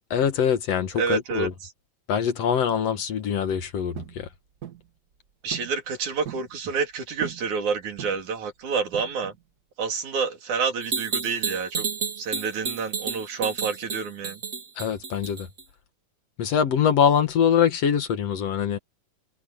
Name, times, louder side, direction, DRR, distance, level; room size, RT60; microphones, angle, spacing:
voice 1, 0.1-1.5 2.1-4.3 14.8-15.5 16.4-18.8, left 8 dB, 60° left, 2.4 m, -23 dB
voice 2, 0.9-1.7 5.4-9.3 9.8-11.8 12.2-14.4, right 5 dB, 80° right, 4.4 m, -28 dB
sound 1, 4.0-4.2 4.6-4.9 5.5-5.8 6.0-6.5 7.2-7.5 8.0-8.3 8.9-9.4, right 10 dB, 65° right, 1.0 m, -39 dB
sound 2, 10.8-15.6, right 5 dB, 30° right, 2.1 m, -31 dB
omnidirectional pair, 3.4 m